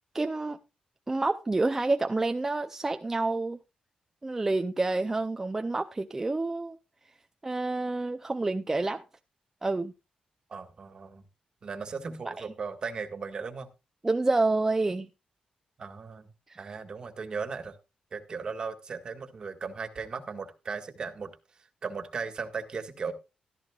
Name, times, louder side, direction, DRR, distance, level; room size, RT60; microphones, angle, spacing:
voice 1, 0.1-0.6 1.1-3.6 4.2-6.8 7.4-9.0 9.6-9.9 12.4-12.5 14.0-15.1 16.5-16.6, right 2 dB, 15° right, 0.5 m, -28 dB
voice 2, 10.5-11.2 11.6-13.7 15.8-16.3 16.6-17.8 18.1-23.1, right 5 dB, 35° right, 1.7 m, -37 dB
14.5 x 13.0 x 2.4 m
wide cardioid pair, 165°, 2 cm